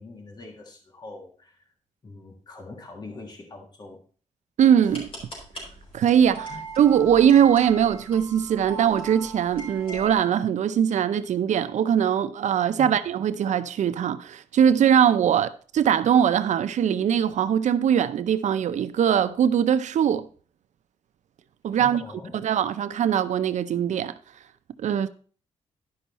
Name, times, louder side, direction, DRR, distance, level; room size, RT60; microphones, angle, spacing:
voice 1, 0.0-1.6 2.0-4.0 6.5-6.6 12.8-12.9 21.8-22.4, left 3 dB, 35° left, 1.6 m, -42 dB
voice 2, 4.6-5.1 5.9-20.3 21.6-22.0 22.4-24.1 24.8-25.1, right 9 dB, 70° right, 0.5 m, -21 dB
sound 1, 4.8-10.1, right 3 dB, 50° left, 4.4 m, -40 dB
12.0 x 5.5 x 4.1 m
wide cardioid pair, 140°, 13 cm